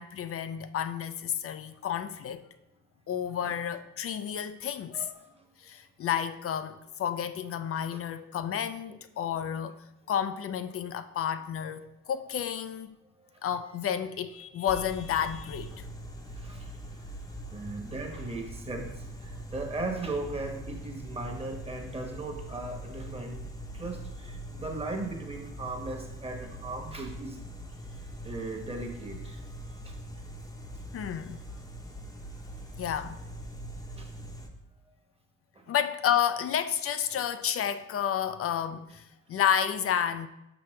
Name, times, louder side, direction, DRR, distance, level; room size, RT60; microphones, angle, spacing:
voice 1, 0.0-2.4 3.1-5.1 5.6-13.0 13.4-15.7 30.9-31.4 32.8-33.2 35.7-40.3, left 9 dB, 50° left, 0.5 m, -31 dB
voice 2, 4.9-5.5 7.9-8.0 10.7-10.8 15.7-15.8 16.2-17.1 17.5-23.4 23.7-27.4 27.9-29.4 29.8-30.0 34.0-34.1 35.5-35.6 37.1-37.2, right 2 dB, 20° right, 1.1 m, -38 dB
sound 1, 14.7-34.5, right 1 dB, 10° left, 0.8 m, -42 dB
6.1 x 5.6 x 3.2 m
cardioid pair, 90°, 30 cm